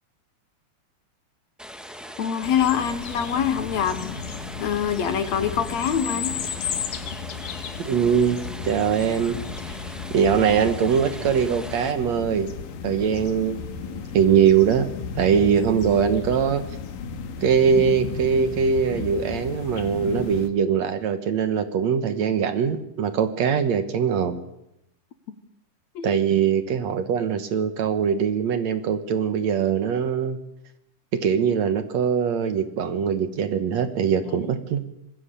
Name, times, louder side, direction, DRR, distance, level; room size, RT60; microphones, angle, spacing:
sound 1, 1.6-11.9, equal, ahead, 0.7 m, -40 dB
voice 1, 2.2-4.0 4.6-6.4 25.3-25.4 26.0-26.2 34.2-34.3, left 8 dB, 65° left, 11 dB, 2.2 m, -25 dB
sound 2, 2.4-20.5, left 6 dB, 85° left, 3.4 m, -34 dB
voice 2, 7.8-9.4 10.1-12.5 12.8-14.9 15.2-16.6 17.4-24.4 26.0-30.4 31.1-34.8, right 7 dB, 60° right, 10 dB, 2.3 m, -22 dB
25.5 x 20.5 x 6.8 m, 0.82 s
omnidirectional pair, 3.8 m